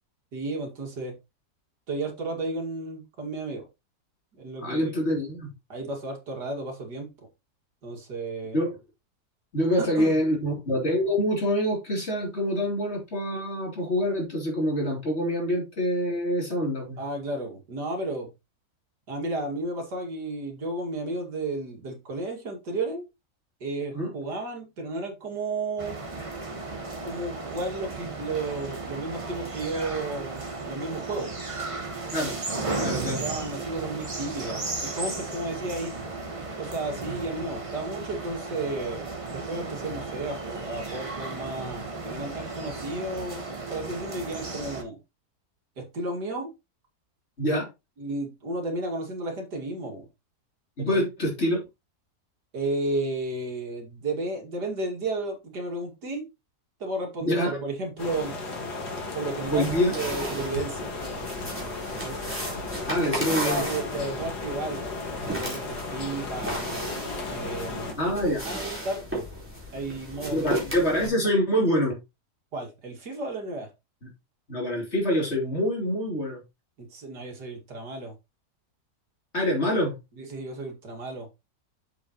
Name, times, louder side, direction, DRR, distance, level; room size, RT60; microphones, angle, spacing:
voice 1, 0.3-1.1 1.9-3.7 4.3-5.0 5.7-7.1 7.8-8.6 9.8-10.2 17.0-18.3 19.1-23.1 23.6-26.0 27.0-31.3 32.7-35.9 36.6-45.0 45.8-46.5 47.4-47.6 48.0-50.1 50.8-51.0 52.5-56.3 56.8-58.3 59.1-59.7 59.9-60.9 61.9-62.2 63.0-64.8 65.1-66.6 67.3-69.3 69.7-71.1 72.5-73.7 76.8-78.1 80.2-81.3, right 2 dB, 90° right, 2.8 m, -33 dB
voice 2, 4.6-5.5 8.5-8.8 9.5-17.0 23.9-24.1 32.1-32.4 32.8-33.2 47.4-47.7 50.8-51.6 57.2-57.6 59.5-60.0 62.9-63.6 68.0-68.5 70.3-72.0 74.0-74.1 74.5-76.4 79.3-80.0, equal, 40° left, 3.5 m, -26 dB
sound 1, 25.8-44.8, right 3 dB, 20° right, 1.1 m, -35 dB
sound 2, 58.0-67.9, left 3 dB, 75° left, 2.5 m, -35 dB
sound 3, 59.4-71.1, right 1 dB, 5° right, 4.0 m, -35 dB
7.4 x 7.4 x 3.0 m
omnidirectional pair, 1.7 m